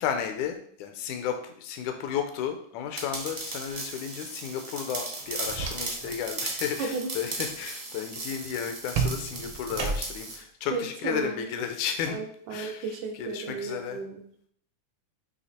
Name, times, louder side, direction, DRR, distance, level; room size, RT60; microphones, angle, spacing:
voice 1, 0.0-12.2 12.5-12.8 13.2-14.0, left 8 dB, 85° left, 6 dB, 2.1 m, -33 dB
sound 1, 3.0-10.4, right 2 dB, 50° right, 0.7 m, -37 dB
sound 2, 5.2-6.2 6.5-6.9 8.9-10.4, right 5 dB, 70° right, 1.3 m, -32 dB
voice 2, 6.8-7.1 10.7-11.5 12.1-14.2, right 4 dB, 90° right, 2 dB, 2.4 m, -34 dB
8.0 x 2.9 x 4.2 m, 0.63 s
omnidirectional pair, 3.4 m